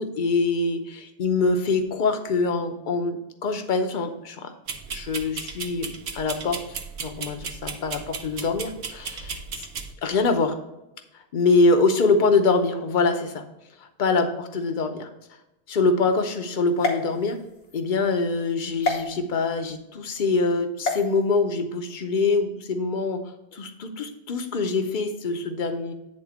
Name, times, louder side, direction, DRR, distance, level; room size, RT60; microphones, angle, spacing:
voice 1, 0.0-4.5 4.9-6.6 7.0-9.6 10.0-10.6 11.3-13.4 14.0-15.1 15.7-17.4 17.7-23.2 23.5-25.9, left 3 dB, 50° left, 7 dB, 0.9 m, -24 dB
sound 1, 4.7-9.9, right 5 dB, 70° right, 1.0 m, -35 dB
sound 2, 16.8-17.8 18.8-19.0 20.8-21.0, left 4 dB, 85° left, 1.6 m, -28 dB
9.6 x 3.8 x 5.0 m, 0.93 s
omnidirectional pair, 1.2 m